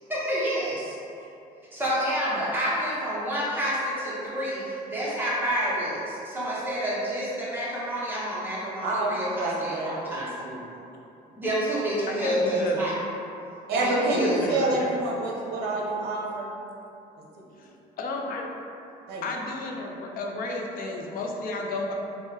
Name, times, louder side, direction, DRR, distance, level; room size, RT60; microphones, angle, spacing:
voice 1, 0.1-0.9 1.7-10.3 11.3-12.9 13.7-14.5, equal, 10° right, -8 dB, 0.8 m, -28 dB
voice 2, 8.8-10.6 13.7-16.5 19.1-19.2, right 2 dB, 75° right, -2 dB, 0.6 m, -28 dB
voice 3, 12.1-13.0 14.1-14.9 17.6-17.7 18.0-18.5 19.2-21.9, left 3 dB, 55° left, 1 dB, 0.5 m, -32 dB
3.6 x 2.1 x 2.7 m, 2.8 s
cardioid pair, 110°, 17 cm